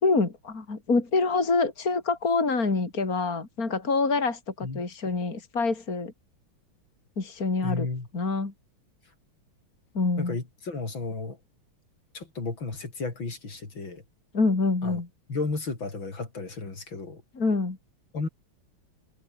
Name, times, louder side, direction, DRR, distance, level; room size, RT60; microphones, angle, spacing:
voice 1, 0.0-6.1 7.2-7.9 8.1-8.5 9.9-10.4 14.3-15.1 17.3-17.8, left 3 dB, 45° left, 4.1 m, -26 dB
voice 2, 7.6-8.1 10.2-11.4 12.1-14.0 14.8-15.0 15.3-17.2 18.1-18.3, left 3 dB, 65° left, 5.2 m, -33 dB
omnidirectional pair, 2.3 m